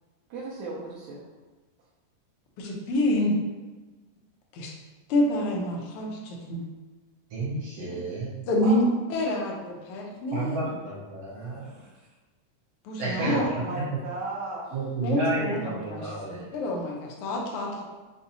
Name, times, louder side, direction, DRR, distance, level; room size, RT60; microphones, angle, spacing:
voice 1, 0.3-1.3 8.6-8.8 9.4-9.6 11.5-12.0 13.2-14.7, right 2 dB, 80° right, -7 dB, 2.0 m, -36 dB
voice 2, 2.6-3.3 4.5-4.7 5.1-6.6 8.5-8.8 9.1-10.6 12.8-13.4 15.0-16.1 16.5-17.8, left 1 dB, 85° left, -1 dB, 1.2 m, -27 dB
voice 3, 7.3-8.3 10.3-11.7 13.0-13.4 13.9-14.0 14.7-16.5, right 2 dB, 65° right, -9 dB, 2.0 m, -31 dB
5.3 x 2.7 x 2.7 m, 1.2 s
omnidirectional pair, 3.4 m